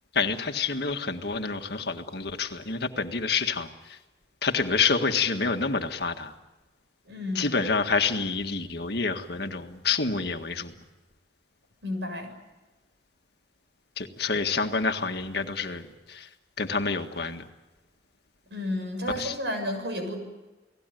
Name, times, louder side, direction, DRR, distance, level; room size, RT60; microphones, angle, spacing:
voice 1, 0.1-4.0 4.4-6.3 7.4-10.7 14.0-16.3 16.6-17.5 19.2-19.3, left 4 dB, 65° left, 6 dB, 1.8 m, -28 dB
voice 2, 7.1-7.6 11.8-12.3 18.5-20.2, left 1 dB, 75° right, 6 dB, 7.1 m, -32 dB
29.5 x 19.0 x 9.3 m, 1.1 s
head